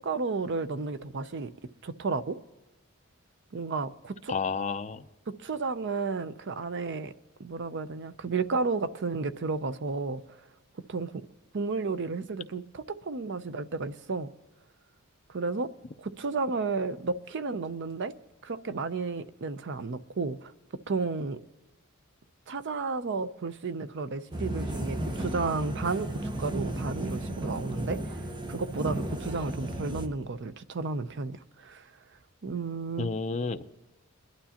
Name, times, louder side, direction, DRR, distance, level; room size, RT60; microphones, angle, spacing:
voice 1, 0.0-1.5 1.8-2.4 3.5-4.3 5.3-7.1 7.4-10.2 10.9-11.1 11.5-14.3 15.3-15.7 16.0-18.1 18.4-20.5 20.9-21.4 22.5-28.2 28.5-31.9 32.4-33.1, right 4 dB, 55° right, 0.6 m, -32 dB
voice 2, 4.3-5.1 33.0-33.9, left 4 dB, 35° left, 0.5 m, -31 dB
sound 1, 24.3-30.1, right 1 dB, 20° right, 0.9 m, -34 dB
21.5 x 11.5 x 2.9 m
head